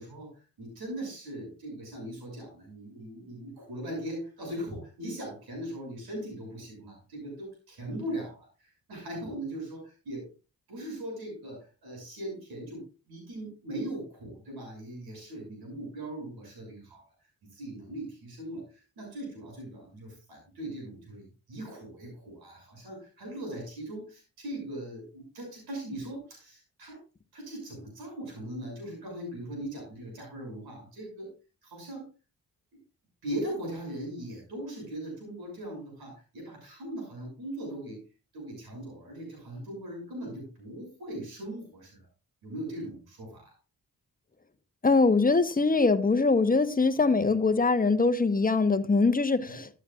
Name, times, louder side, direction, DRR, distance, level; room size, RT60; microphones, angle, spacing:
voice 1, 0.0-10.3 10.7-17.0 17.5-27.0 27.3-31.3 31.6-32.1 32.7-32.8 33.2-38.0 38.3-42.1 42.4-43.5 49.4-49.6, right 1 dB, 90° right, 6.4 m, -39 dB
voice 2, 44.8-49.7, left 3 dB, 25° left, 1.1 m, -23 dB
14.0 x 8.5 x 2.4 m
cardioid pair, 55°, 36 cm